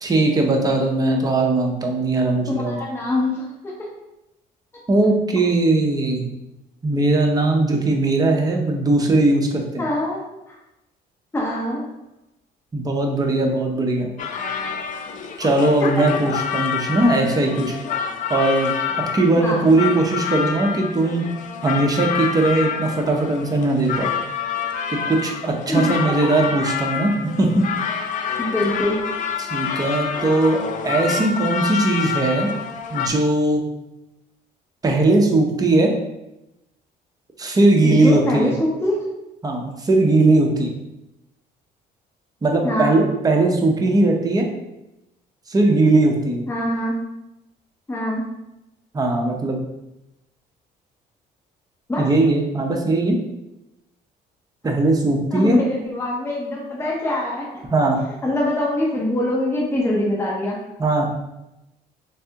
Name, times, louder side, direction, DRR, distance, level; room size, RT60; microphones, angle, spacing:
voice 1, 0.0-2.8 4.9-6.3 6.8-9.8 12.7-14.1 15.4-17.8 18.3-18.7 19.1-21.2 21.6-24.1 24.9-27.6 29.4-32.5 32.9-33.6 34.8-35.9 37.4-38.5 39.4-40.7 42.4-44.5 45.5-46.4 48.9-49.6 52.0-53.2 54.6-55.6 57.7-58.0 60.8-61.1, right 2 dB, 20° right, 1 dB, 0.7 m, -19 dB
voice 2, 2.5-3.7 9.8-10.2 10.5-10.6 11.3-11.8 15.8-15.9 19.4-19.8 25.7-26.1 28.4-29.0 37.8-39.0 42.6-43.0 46.5-47.0 47.9-48.3 51.9-52.0 55.3-57.5 58.2-60.6, left 1 dB, 15° left, -4 dB, 0.8 m, -23 dB
sound 1, 14.2-33.1, left 7 dB, 50° left, 0.4 m, -27 dB
3.4 x 3.3 x 2.8 m, 0.92 s
cardioid pair, 110°, 17 cm